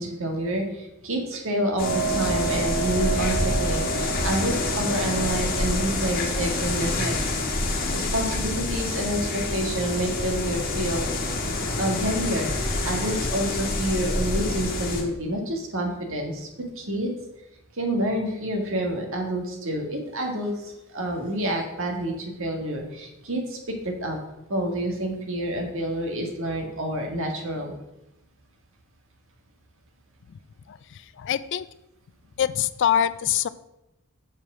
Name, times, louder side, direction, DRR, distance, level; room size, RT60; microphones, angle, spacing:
voice 1, 0.0-7.4 7.9-11.1 11.8-17.1 17.7-24.2 24.5-27.7, right 1 dB, 65° right, 3 dB, 1.7 m, -28 dB
sound 1, 1.8-15.0, left 1 dB, 45° left, 1.5 m, -27 dB
voice 2, 30.7-31.7 32.4-33.5, left 9 dB, 60° left, 16 dB, 0.4 m, -25 dB
7.1 x 4.9 x 6.1 m, 0.88 s
head